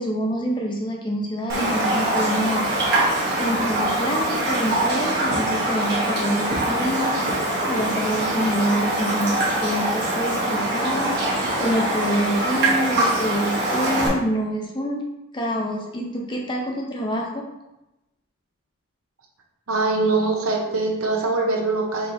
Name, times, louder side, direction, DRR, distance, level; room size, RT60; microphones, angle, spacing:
voice 1, 0.0-2.7 3.4-7.1 7.7-15.0 15.3-17.4, equal, 20° left, 0 dB, 0.6 m, -26 dB
Raindrop, 1.5-14.1, right 1 dB, 50° right, 1.0 m, -23 dB
voice 2, 19.7-22.1, right 3 dB, 80° right, 0 dB, 0.9 m, -22 dB
5.6 x 3.0 x 2.7 m, 0.95 s
head